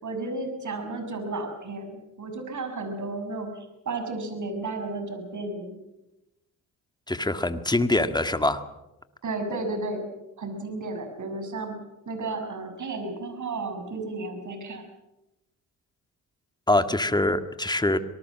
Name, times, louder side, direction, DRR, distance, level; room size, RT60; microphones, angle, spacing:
voice 1, 0.0-5.8 9.2-10.0 10.4-11.8 12.1-14.8, right 2 dB, 50° right, 7 dB, 6.7 m, -33 dB
voice 2, 7.1-8.6 16.7-18.0, left 2 dB, 10° left, 9 dB, 1.9 m, -24 dB
25.5 x 19.0 x 7.6 m, 0.95 s
cardioid pair, 75°, 37 cm